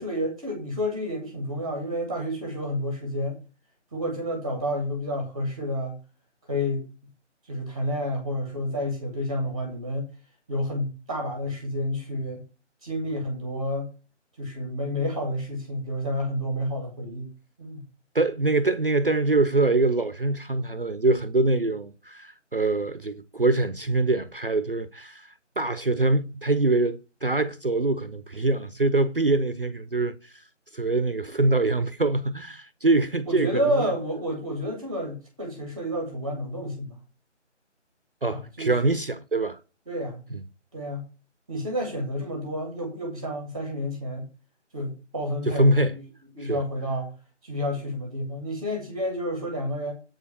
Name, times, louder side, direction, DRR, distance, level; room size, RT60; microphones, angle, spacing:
voice 1, 0.0-3.4 3.9-6.0 6.5-6.8 7.5-10.1 10.5-12.4 12.8-13.9 14.4-17.3 17.6-17.8 33.3-37.0 38.3-38.7 39.9-40.2 40.7-41.0 41.5-44.2 44.7-45.7 45.9-46.0 46.3-47.1 47.4-49.9, equal, 5° right, 1.0 m, -30 dB
voice 2, 18.1-30.4 30.7-33.9 38.2-39.6 40.3-40.4 45.5-46.0 46.4-46.6, right 2 dB, 50° right, 0.6 m, -24 dB
8.0 x 4.9 x 6.8 m
figure-of-eight pair, 160°, 37 cm